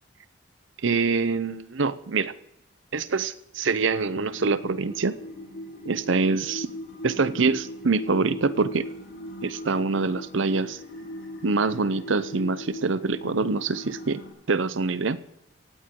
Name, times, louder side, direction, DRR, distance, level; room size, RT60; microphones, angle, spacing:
voice 1, 0.8-2.3 2.9-5.2 5.9-6.7 7.0-8.9 9.4-10.8 11.4-14.2 14.5-15.2, right 4 dB, 75° right, 16 dB, 0.7 m, -25 dB
sound 1, 3.9-14.3, equal, 75° left, 4.8 m, -39 dB
17.0 x 16.5 x 3.8 m, 0.87 s
head